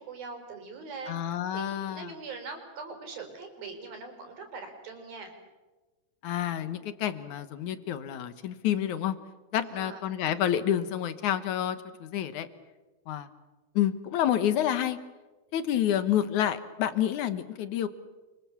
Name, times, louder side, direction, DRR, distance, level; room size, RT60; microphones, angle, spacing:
voice 1, 0.0-5.3 9.6-10.0, right 4 dB, 70° right, 5 dB, 6.0 m, -42 dB
voice 2, 1.1-2.1 6.2-9.2 9.5-12.5 13.1-13.3 13.8-15.0 15.5-17.9, left 10 dB, 60° left, 12 dB, 2.3 m, -29 dB
29.0 x 24.5 x 7.3 m, 1.2 s
omnidirectional pair, 4.3 m